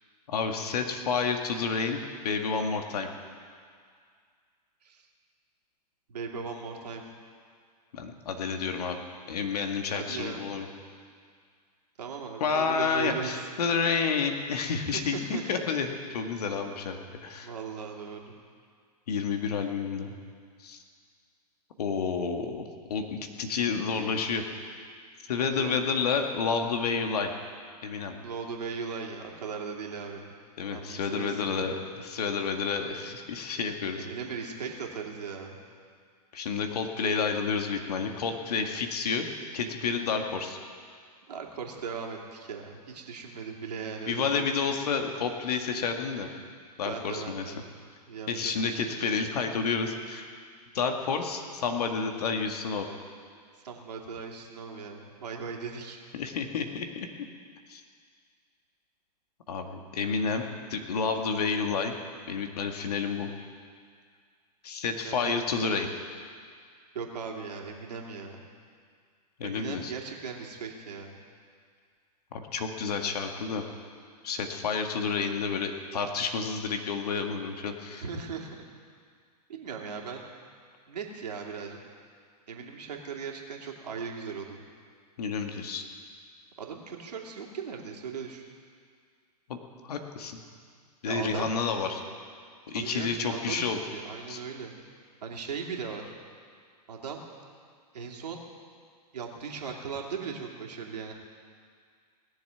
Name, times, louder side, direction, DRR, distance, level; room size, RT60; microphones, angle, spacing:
voice 1, 0.3-3.1 7.9-9.0 9.3-10.7 12.4-17.5 19.1-20.1 20.6-20.8 21.8-24.5 25.3-27.3 27.8-28.2 30.6-34.1 36.3-39.3 39.5-40.6 44.1-46.3 46.8-47.5 48.3-50.4 50.7-52.9 56.1-57.1 57.7-57.8 59.5-60.4 60.7-61.9 62.3-63.3 64.6-65.9 69.4-69.9 72.3-73.6 74.2-78.0 85.2-85.8 89.5-89.6 89.8-90.4 91.0-92.0 92.7-93.8 94.3-94.4, left 5 dB, 65° left, 4 dB, 1.9 m, -30 dB
voice 2, 6.1-7.0 9.9-10.5 12.0-13.5 14.9-15.5 17.4-18.4 25.4-25.9 28.2-30.3 30.7-31.7 33.9-35.6 41.3-44.6 46.8-47.6 48.1-49.0 53.6-56.0 65.0-65.9 66.9-68.5 69.4-71.2 77.9-78.7 79.5-80.2 80.9-81.8 82.5-84.6 86.6-88.5 91.0-91.5 92.7-94.7 95.2-96.0 96.9-97.2 97.9-98.4 99.1-101.1, right 6 dB, 75° right, 0 dB, 2.7 m, -38 dB
19.5 x 7.4 x 9.4 m, 2.1 s
hypercardioid pair, 115°, 21 cm